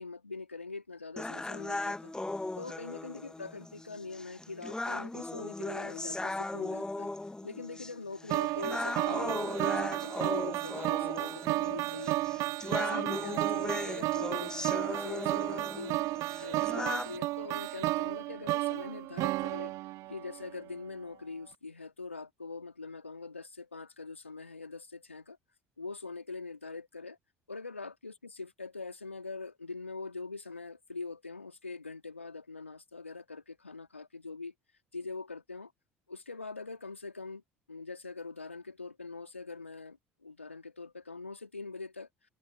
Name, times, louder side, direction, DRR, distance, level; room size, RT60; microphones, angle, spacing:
voice 1, 0.0-2.1 2.6-7.1 7.4-12.2 12.7-16.0 16.4-19.7 20.1-25.4 25.8-27.2 27.5-34.5 34.9-35.7 36.1-37.4 37.7-42.1, left 3 dB, 90° left, 2.5 m, -43 dB
sound 1, 1.2-17.2, left 2 dB, 10° left, 1.7 m, -38 dB
sound 2, 8.3-20.5, right 19 dB, 55° right, 0.4 m, -33 dB
figure-of-eight pair, 60°, 7 cm